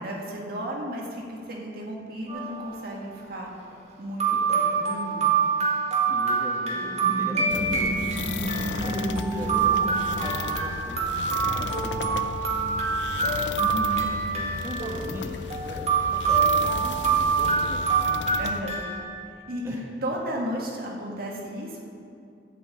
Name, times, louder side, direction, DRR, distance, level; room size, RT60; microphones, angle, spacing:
voice 1, 0.0-3.5 4.0-5.4 10.1-10.3 13.6-14.0 18.4-18.8 19.5-21.8, equal, 60° right, -1 dB, 1.8 m, -34 dB
sound 1, 2.3-2.8 3.7-3.8 4.2-19.0, right 5 dB, 40° right, 1.9 m, -26 dB
voice 2, 6.1-8.0 8.3-8.9 9.3-11.0 11.5-13.2 14.0-15.3 15.6-17.8 19.6-19.8, left 1 dB, 15° right, -2 dB, 1.2 m, -40 dB
sound 2, 6.8-11.2, right 1 dB, 5° left, 1.9 m, -32 dB
sound 3, 7.5-18.6, left 4 dB, 85° left, 0.6 m, -35 dB
11.5 x 5.6 x 8.4 m, 2.5 s
head